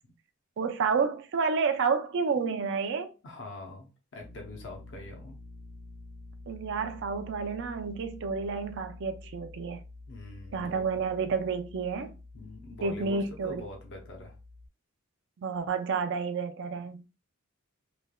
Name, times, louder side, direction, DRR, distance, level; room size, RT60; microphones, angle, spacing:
voice 1, 0.6-3.1 6.5-9.8 10.5-12.2 12.8-13.6 15.4-17.1, right 5 dB, 55° right, 0.4 m, -30 dB
voice 2, 3.2-5.4 10.1-10.9 11.3-11.4 12.3-14.4, left 2 dB, 55° left, 0.6 m, -44 dB
sound 1, 4.2-14.7, left 2 dB, 15° left, 0.4 m, -48 dB
3.2 x 2.1 x 2.2 m
head